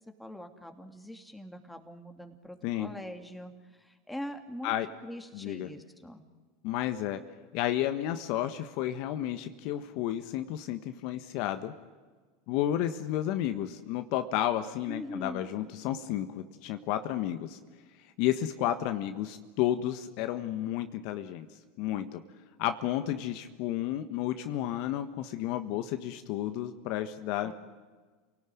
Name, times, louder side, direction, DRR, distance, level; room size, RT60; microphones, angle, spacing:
voice 1, 0.2-4.7 5.0-6.2 14.9-15.5 27.4-27.5, left 1 dB, 5° left, 4 dB, 2.9 m, -43 dB
voice 2, 5.3-5.7 6.6-7.2 7.5-11.7 12.5-17.6 18.2-21.5 21.8-22.2 22.6-27.5, left 12 dB, 60° left, 8 dB, 1.4 m, -32 dB
28.0 x 18.0 x 9.4 m, 1.4 s
hypercardioid pair, 90°, 0 cm